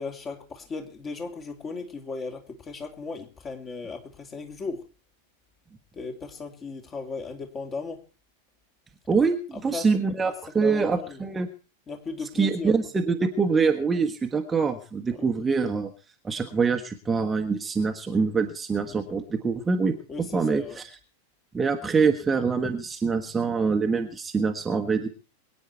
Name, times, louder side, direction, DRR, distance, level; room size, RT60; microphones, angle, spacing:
voice 1, 0.0-4.9 5.9-8.0 9.7-9.9 10.2-10.3 10.6-11.3 11.9-12.7 20.1-20.8, left 4 dB, 25° left, 3 dB, 2.8 m, -36 dB
voice 2, 9.1-11.5 12.3-15.9 16.2-19.9 20.3-20.9 21.5-25.1, right 5 dB, 15° right, 5 dB, 1.4 m, -25 dB
23.0 x 9.5 x 4.6 m, 0.37 s
figure-of-eight pair, 90°, 0 cm